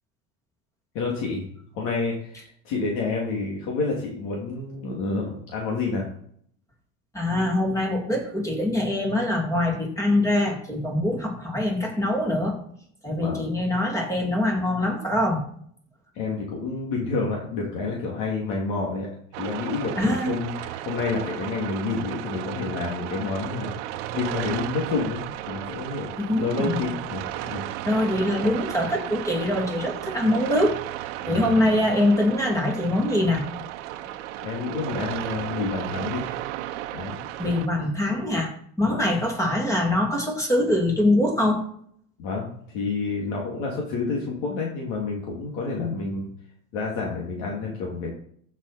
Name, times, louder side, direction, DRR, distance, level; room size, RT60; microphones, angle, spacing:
voice 1, 0.9-1.4 1.7-6.1 13.2-13.4 16.1-19.1 19.4-25.2 25.5-26.1 26.4-27.6 31.2-31.5 34.4-36.3 36.9-37.1 37.5-37.6 38.8-39.0 42.2-42.5 42.7-46.3 46.7-48.1, left 3 dB, 65° left, -2 dB, 2.9 m, -29 dB
voice 2, 7.1-12.6 13.0-15.4 20.0-20.3 26.3-26.8 27.9-30.8 31.3-33.4 37.4-41.6, left 1 dB, 10° left, 0 dB, 2.9 m, -23 dB
sound 1, 19.3-37.7, right 14 dB, 90° right, 1.0 m, -34 dB
14.5 x 6.1 x 4.4 m, 0.63 s
cardioid pair, 155°, 34 cm